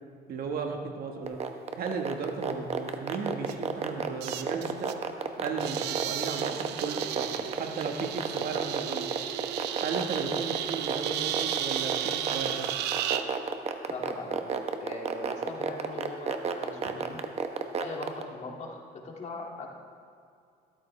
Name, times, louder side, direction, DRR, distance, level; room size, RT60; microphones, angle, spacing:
voice 1, 0.3-1.4 1.8-4.9 5.4-9.1 9.8-12.7, right 4 dB, 60° right, 3 dB, 1.5 m, -35 dB
sound 1, 1.3-18.2, right 6 dB, 40° right, 0.9 m, -30 dB
sound 2, 3.5-3.6 4.2-5.0 5.5-13.2, right 11 dB, 85° right, 0.6 m, -34 dB
voice 2, 13.9-14.4 14.8-17.2 17.8-19.7, left 2 dB, 40° left, 0 dB, 2.2 m, -40 dB
14.0 x 13.0 x 3.3 m, 2.3 s
cardioid pair, 110°, 17 cm